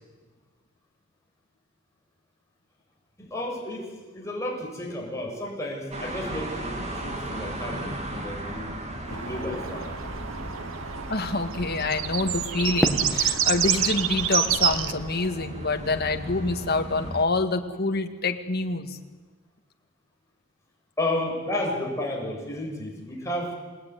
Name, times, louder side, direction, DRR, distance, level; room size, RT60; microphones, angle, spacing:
voice 1, 3.2-3.9 4.1-8.7 9.1-9.9 21.0-23.5, left 1 dB, 15° left, -2 dB, 6.8 m, -32 dB
sound 1, 5.9-17.2, right 1 dB, 35° right, 3.2 m, -37 dB
sound 2, 9.1-14.9, right 9 dB, 70° right, 1.2 m, -28 dB
voice 2, 11.1-19.0, left 3 dB, 50° left, 5 dB, 2.0 m, -26 dB
Fireworks, 12.8-15.8, equal, ahead, 2.0 m, -32 dB
28.0 x 19.0 x 9.6 m, 1.3 s
head